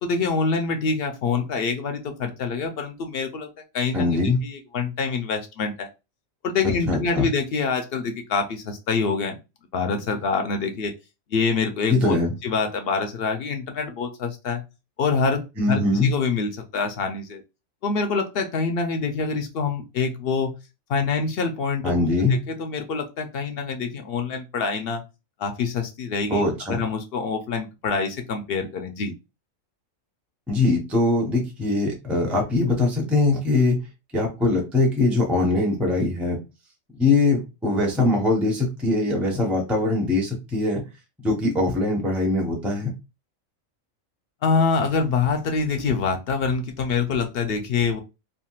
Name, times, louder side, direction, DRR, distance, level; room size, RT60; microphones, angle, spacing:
voice 1, 0.0-3.5 3.7-5.9 6.4-9.4 9.7-10.9 11.3-12.2 12.4-14.6 15.0-15.4 15.7-17.4 17.8-20.5 20.9-25.0 25.4-29.1 44.4-48.0, left 4 dB, 60° left, 5 dB, 0.6 m, -25 dB
voice 2, 3.9-4.4 6.9-7.3 11.9-12.3 15.6-16.1 21.8-22.4 26.3-26.8 30.5-33.8 34.1-36.4 37.0-40.8 41.2-42.9, left 2 dB, ahead, 0 dB, 0.6 m, -22 dB
3.5 x 2.4 x 2.3 m, 0.27 s
omnidirectional pair, 1.4 m